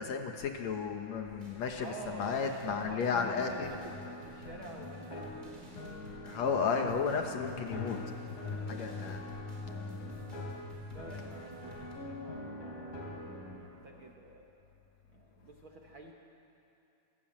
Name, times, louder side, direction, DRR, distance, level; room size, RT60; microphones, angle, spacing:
voice 1, 0.0-3.7 6.2-8.0 8.7-9.2, left 6 dB, 65° left, 4 dB, 2.0 m, -33 dB
sound 1, 1.2-11.9, equal, 15° right, 4.2 m, -54 dB
voice 2, 1.8-5.7 6.2-6.4 8.4-8.9 9.5-9.8 10.9-13.1 13.5-14.6 15.1-16.1, right 3 dB, 55° right, 0 dB, 1.5 m, -49 dB
sound 2, 3.1-13.6, left 2 dB, 85° left, 4.9 m, -43 dB
27.0 x 15.0 x 8.7 m, 2.8 s
omnidirectional pair, 3.9 m